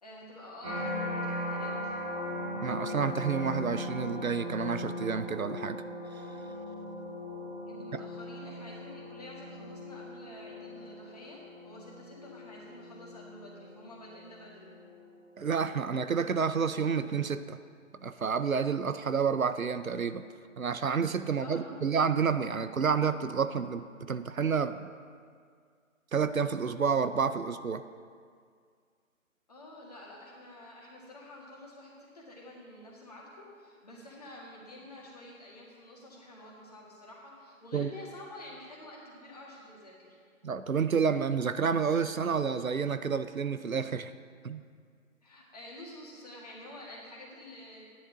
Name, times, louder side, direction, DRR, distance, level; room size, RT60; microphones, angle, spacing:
voice 1, 0.0-2.0 7.7-14.7 21.4-21.9 29.5-40.2 45.2-47.8, left 1 dB, 30° left, -4 dB, 1.8 m, -49 dB
sound 1, 0.6-15.8 16.3-16.8, left 1 dB, 25° right, 2.0 m, -39 dB
voice 2, 2.6-5.8 6.1-6.2 7.9-8.0 15.4-17.6 18.0-20.2 20.6-24.9 26.1-27.8 37.7-37.9 40.4-44.1 44.4-44.6, right 6 dB, 75° right, 12 dB, 0.6 m, -29 dB
12.5 x 10.5 x 3.8 m, 2.1 s
figure-of-eight pair, 155°, 42 cm